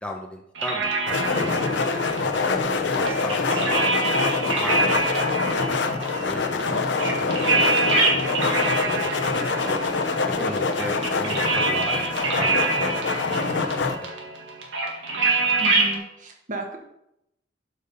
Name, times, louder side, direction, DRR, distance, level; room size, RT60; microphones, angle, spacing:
voice 1, 0.0-1.7 2.2-4.0 4.4-5.0 6.2-8.4 8.9-9.8 10.3-14.1, left 1 dB, 5° left, 1 dB, 0.8 m, -37 dB
sound 1, 0.6-16.0, right 3 dB, 80° right, 1.8 m, -26 dB
sound 2, 1.1-14.0, left 4 dB, 65° left, 0.7 m, -25 dB
voice 2, 15.6-16.8, right 2 dB, 45° right, 2 dB, 1.4 m, -34 dB
8.1 x 5.4 x 5.4 m, 0.81 s
head